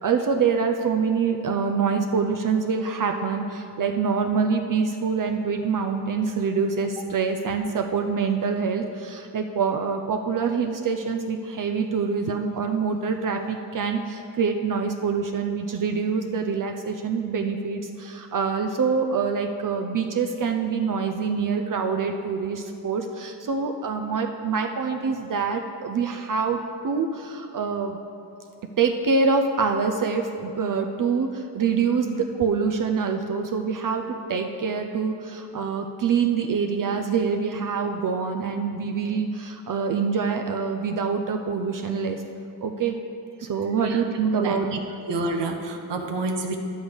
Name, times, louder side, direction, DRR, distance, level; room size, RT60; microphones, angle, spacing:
voice 1, 0.0-28.0 28.8-42.2 42.6-43.0 43.4-44.8, right 5 dB, 50° right, 4 dB, 0.6 m, -25 dB
voice 2, 45.1-46.6, right 3 dB, 85° right, 4 dB, 1.0 m, -28 dB
10.0 x 6.3 x 5.1 m, 2.6 s
cardioid pair, 105°, 41 cm